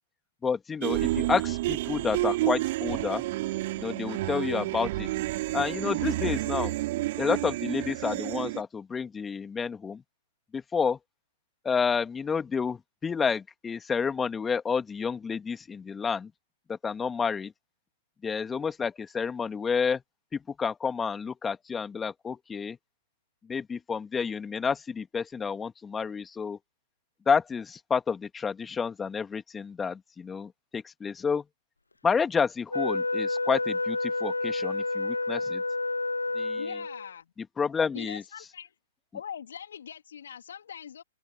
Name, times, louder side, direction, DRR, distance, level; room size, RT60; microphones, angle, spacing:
voice 1, 0.4-3.2 3.7-5.1 5.5-6.7 7.2-10.0 10.5-11.0 11.6-16.3 16.7-17.5 18.2-20.0 20.6-22.8 23.5-26.6 27.3-31.4 32.0-35.6 36.4-36.7 37.6-38.2, left 6 dB, 15° left, 2.3 m, -30 dB
sound 1, 0.8-8.6, right 18 dB, 45° right, 3.2 m, -30 dB
Wind instrument woodwind instrument, 32.7-37.1, left 3 dB, 85° left, 0.7 m, -29 dB
voice 2, 36.6-37.2 37.9-38.7 39.1-41.0, left 8 dB, 65° left, 2.6 m, -41 dB
open air
figure-of-eight pair, 110°, 0 cm